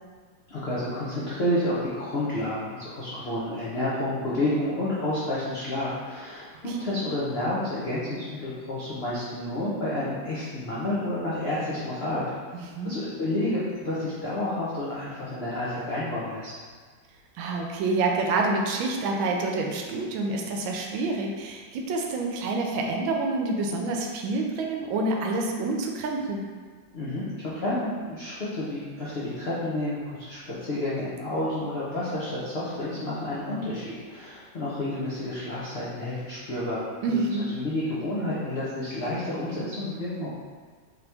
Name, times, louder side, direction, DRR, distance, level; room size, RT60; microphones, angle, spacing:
voice 1, 0.5-12.2 12.8-16.5 26.9-36.8 37.1-37.2 37.5-40.3, left 1 dB, 75° left, -9 dB, 0.5 m, -30 dB
voice 2, 17.4-26.4 37.0-37.5, right 3 dB, 85° right, 1 dB, 1.3 m, -27 dB
3.8 x 2.9 x 3.3 m, 1.5 s
omnidirectional pair, 2.1 m